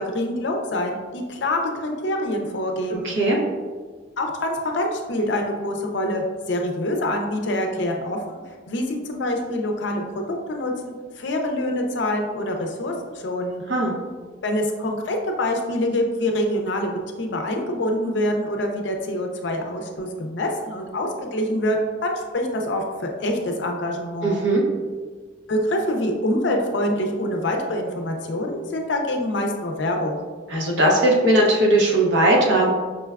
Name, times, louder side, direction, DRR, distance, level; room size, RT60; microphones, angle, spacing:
voice 1, 0.0-3.1 4.2-8.4 8.7-12.9 13.2-13.6 14.4-24.4 25.5-30.2, left 1 dB, 65° left, 3 dB, 0.5 m, -25 dB
voice 2, 3.0-3.4 13.7-13.9 24.2-24.6 30.5-32.7, right 1 dB, 65° right, -2 dB, 0.7 m, -18 dB
5.4 x 2.2 x 2.2 m, 1.5 s
head